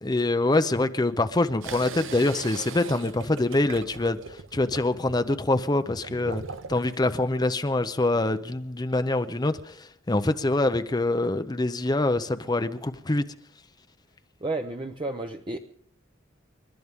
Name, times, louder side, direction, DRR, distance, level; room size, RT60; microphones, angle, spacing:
voice 1, 0.0-4.2 4.5-6.4 6.7-13.2, left 2 dB, 20° left, 0.6 m, -25 dB
sound 1, 1.6-7.0, right 4 dB, 80° right, 0.9 m, -40 dB
voice 2, 14.4-15.6, right 2 dB, 25° right, 0.7 m, -31 dB
29.5 x 12.5 x 3.6 m
head